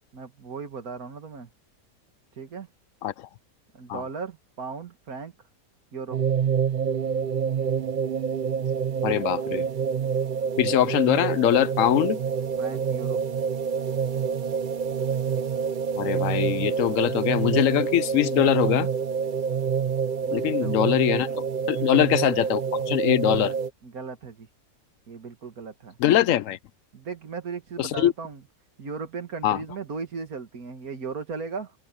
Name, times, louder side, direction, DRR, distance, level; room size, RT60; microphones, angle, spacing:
voice 1, 0.1-1.5 2.4-2.7 3.7-5.3 5.9-6.2 12.6-13.2 20.2-20.8 21.8-22.1 23.8-24.5 25.1-26.0 26.9-28.4 28.8-31.7, right 5 dB, 85° right, 2.3 m, -37 dB
sound 1, 6.1-23.7, right 7 dB, 45° right, 0.7 m, -27 dB
voice 2, 9.0-9.7 10.6-12.2 16.0-18.9 20.3-22.6 22.9-23.5 26.0-26.6 27.8-28.1 29.4-29.6, left 12 dB, 70° left, 0.9 m, -22 dB
omnidirectional pair, 1.5 m